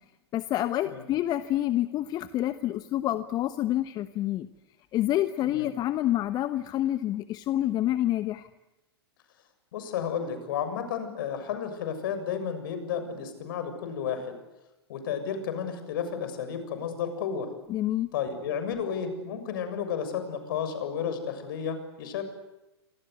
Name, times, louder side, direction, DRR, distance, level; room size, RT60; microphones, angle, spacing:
voice 1, 0.3-4.5 4.9-8.5 17.7-18.1, left 13 dB, 30° left, 12 dB, 1.1 m, -28 dB
voice 2, 9.7-14.3 14.9-17.5 18.1-22.2, left 7 dB, 55° left, 9 dB, 7.1 m, -32 dB
28.0 x 26.0 x 8.2 m, 0.98 s
figure-of-eight pair, 105°, 14 cm